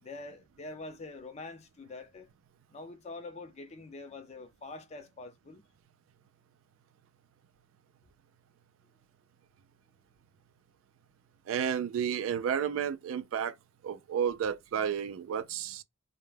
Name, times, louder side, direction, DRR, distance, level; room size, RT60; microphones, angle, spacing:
voice 1, 0.0-2.3 2.7-5.6, left 3 dB, 35° left, 0.5 m, -45 dB
voice 2, 11.5-13.5 13.8-15.8, right 8 dB, 75° right, 0.3 m, -31 dB
2.1 x 2.1 x 3.1 m
head